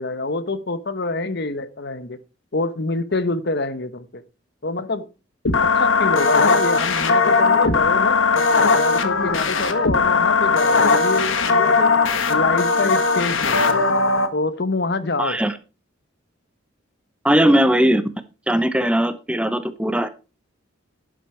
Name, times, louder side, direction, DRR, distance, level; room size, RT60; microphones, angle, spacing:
voice 1, 0.0-2.2 2.5-4.2 4.6-5.1 5.6-8.2 8.7-12.0 12.3-13.6 14.3-15.4, left 3 dB, 55° left, 0.9 m, -26 dB
sound 1, 5.5-14.3, left 4 dB, 70° left, 1.5 m, -18 dB
voice 2, 15.2-15.5 17.2-18.1 18.5-20.1, right 1 dB, 5° right, 0.8 m, -19 dB
12.0 x 9.3 x 4.4 m
head